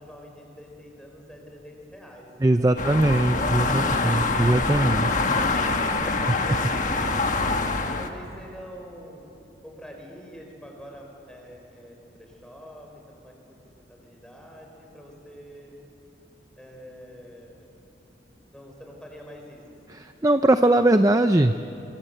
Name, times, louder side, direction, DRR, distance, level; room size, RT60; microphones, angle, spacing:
voice 1, 0.0-4.5 5.3-6.5 7.9-9.3 9.6-13.6 13.9-15.7 16.6-17.7 18.5-19.6 19.9-20.0, equal, 5° left, 1 dB, 4.7 m, -45 dB
voice 2, 2.4-5.1 19.9-21.5, right 1 dB, 20° right, 8 dB, 0.5 m, -20 dB
sound 1, 2.8-8.1, left 3 dB, 40° left, 1.5 m, -25 dB
25.5 x 25.0 x 7.9 m, 2.8 s
head